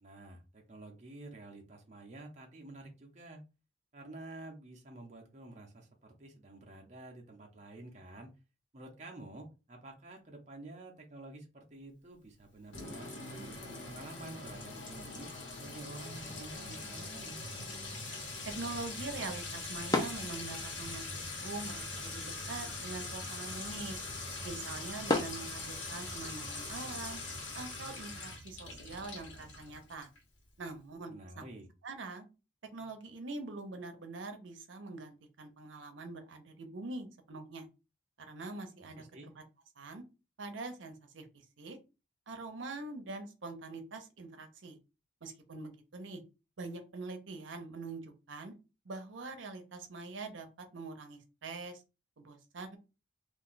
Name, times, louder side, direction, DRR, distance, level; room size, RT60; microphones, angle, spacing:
voice 1, 0.0-3.4 3.9-8.3 8.7-15.3 15.6-17.4 31.1-31.7 38.8-39.3, right 2 dB, 35° right, 2 dB, 0.5 m, -50 dB
Sink (filling or washing) / Trickle dribble / Fill (with liquid), 12.7-30.2, left 3 dB, 80° left, 1.2 m, -42 dB
sound 1, 16.2-26.2, left 2 dB, 20° left, 0.4 m, -41 dB
voice 2, 18.4-24.0 24.4-27.2 27.5-30.1 30.6-31.4 31.8-32.3 32.7-37.7 38.3-39.0 39.8-40.0 40.4-41.3 41.6-41.8 42.3-44.8 45.2-46.2 46.6-48.5 48.8-50.5 50.7-51.8 52.2-52.8, right 3 dB, 80° right, 6 dB, 0.6 m, -44 dB
2.5 x 2.2 x 3.8 m, 0.29 s
head